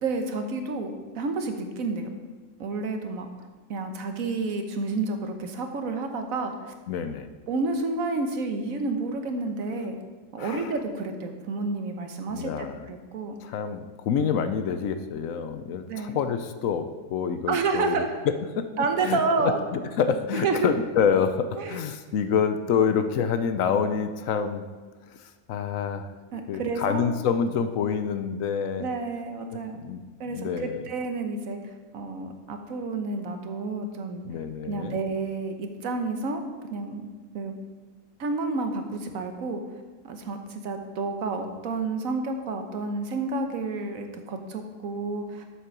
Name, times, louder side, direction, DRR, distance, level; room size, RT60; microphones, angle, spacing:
voice 1, 0.0-2.1 2.6-3.3 3.7-6.7 7.5-10.0 10.3-13.4 15.9-16.2 17.5-18.1 18.8-19.6 20.3-20.7 21.6-21.8 26.3-27.1 28.8-29.8 30.2-31.6 31.9-34.2 34.6-36.4 36.7-37.1 37.3-37.5 38.2-39.6 40.0-45.5, right 3 dB, 75° right, 5 dB, 1.4 m, -30 dB
voice 2, 6.9-7.3 10.4-10.7 12.3-12.9 13.4-18.0 18.6-18.7 19.0-24.6 25.1-26.1 26.3-28.9 29.5-30.0 30.3-30.9 34.2-35.0, left 7 dB, 75° left, 9 dB, 1.0 m, -27 dB
7.7 x 6.6 x 6.1 m, 1.4 s
omnidirectional pair, 1.4 m